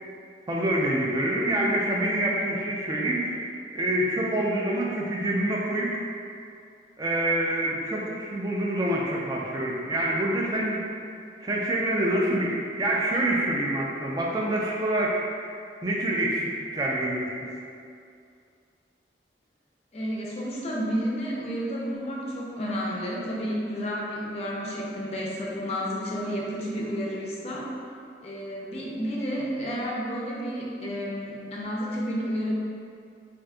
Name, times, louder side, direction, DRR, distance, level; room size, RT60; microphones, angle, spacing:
voice 1, 0.5-3.4 3.7-6.0 7.0-11.0 11.4-15.4 15.8-17.3, right 1 dB, 20° right, -3 dB, 0.3 m, -26 dB
voice 2, 19.9-27.7 28.2-32.6, equal, 35° left, -4 dB, 0.5 m, -31 dB
2.6 x 2.2 x 3.6 m, 2.4 s
head